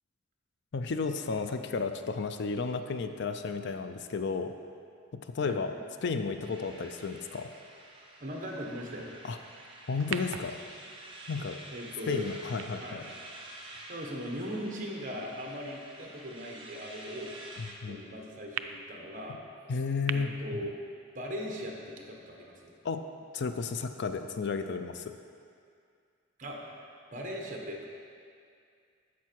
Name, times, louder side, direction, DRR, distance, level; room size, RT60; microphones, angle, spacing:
voice 1, 0.7-4.5 5.1-5.7 6.0-7.5 9.2-9.4 9.9-10.6 11.3-11.6 12.1-13.0 17.6-18.0 19.7-20.3 22.8-23.0 23.3-25.2, left 4 dB, 60° left, 8 dB, 0.5 m, -33 dB
sound 1, 6.4-17.7, right 2 dB, 25° right, 1.1 m, -49 dB
voice 2, 8.2-9.1 11.7-12.3 12.8-13.0 13.9-17.3 17.9-19.4 20.1-20.7 21.1-22.7 26.4-27.8, equal, 40° right, 0 dB, 1.3 m, -39 dB
sound 2, 10.0-14.4 15.1-15.2 18.6-18.7 20.1-20.2, right 9 dB, 85° right, 0.4 m, -42 dB
10.5 x 7.2 x 4.6 m, 2.3 s
head